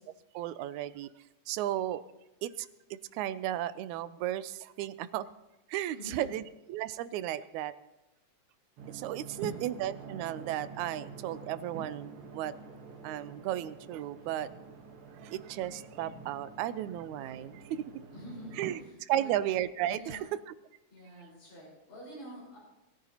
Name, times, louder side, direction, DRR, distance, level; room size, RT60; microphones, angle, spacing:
voice 1, 0.3-1.1 1.5-2.1 2.4-5.3 5.7-6.4 6.7-7.7 8.9-12.5 13.0-14.5 15.2-17.8 18.6-18.8 19.1-20.0, right 12 dB, 85° right, 15 dB, 2.0 m, -34 dB
voice 2, 5.9-6.4 9.3-9.7 14.2-14.6 18.1-19.4 19.9-20.2 20.9-22.6, equal, 85° left, -7 dB, 6.2 m, -48 dB
sound 1, 8.8-18.8, right 4 dB, 55° right, 1.9 m, -47 dB
20.5 x 14.0 x 2.9 m, 0.95 s
omnidirectional pair, 3.3 m